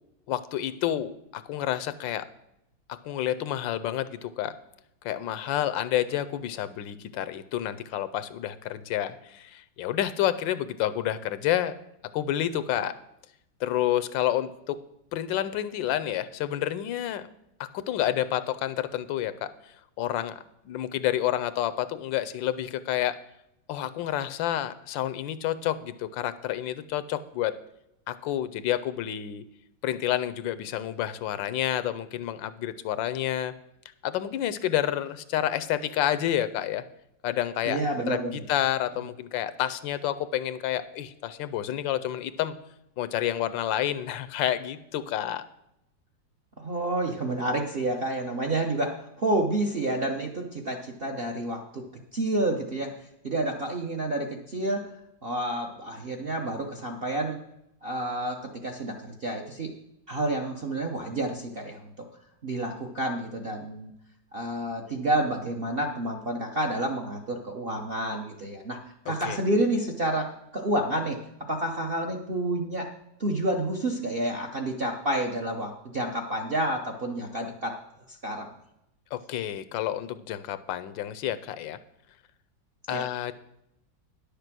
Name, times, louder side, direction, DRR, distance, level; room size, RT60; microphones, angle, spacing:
voice 1, 0.3-2.3 3.0-4.5 5.0-11.8 12.1-12.9 13.6-14.8 15.1-17.3 17.6-19.5 20.0-20.3 20.6-23.2 23.7-27.5 28.1-29.4 29.8-33.5 34.0-36.8 37.2-38.2 38.5-42.6 43.0-45.4 69.1-69.4 79.1-81.8 82.9-83.3, left 12 dB, 85° left, 14 dB, 1.3 m, -29 dB
voice 2, 37.6-38.4 46.6-51.8 52.1-52.9 53.2-54.9 55.2-57.4 57.8-59.8 60.1-61.9 62.4-63.9 64.3-68.8 69.1-71.2 71.5-72.9 73.2-77.8 78.1-78.5 82.9-83.1, right 1 dB, 50° right, 2 dB, 0.7 m, -29 dB
10.0 x 6.7 x 6.0 m, 0.82 s
omnidirectional pair, 2.0 m